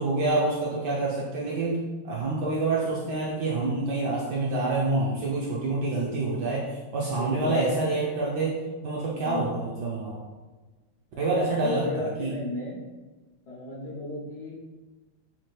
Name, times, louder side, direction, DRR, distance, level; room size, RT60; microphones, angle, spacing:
voice 1, 0.0-1.8 2.0-8.6 8.8-10.2 11.2-12.3, right 2 dB, 70° right, -4 dB, 1.0 m, -27 dB
voice 2, 7.1-7.6 9.2-9.6 11.3-12.8 13.5-14.5, left 2 dB, 70° left, -6 dB, 1.0 m, -35 dB
4.3 x 2.4 x 3.1 m, 1.2 s
omnidirectional pair, 2.3 m